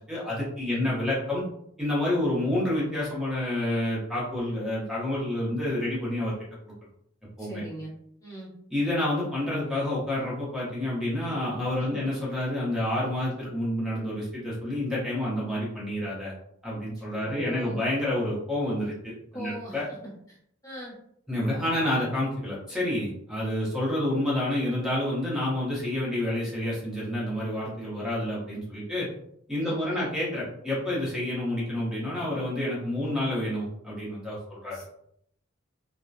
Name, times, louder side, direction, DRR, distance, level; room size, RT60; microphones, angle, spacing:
voice 1, 0.1-1.4 1.8-6.3 7.4-7.6 8.7-16.3 16.6-19.8 21.3-29.1 29.5-34.8, left 1 dB, 5° right, -7 dB, 0.7 m, -29 dB
voice 2, 7.4-7.9 8.2-8.5 11.8-12.0 17.0-17.8 19.3-19.8 20.3-20.4 20.6-20.9 29.6-30.1 34.7-34.8, equal, 15° left, -7 dB, 1.0 m, -40 dB
2.7 x 2.1 x 2.3 m, 0.70 s
head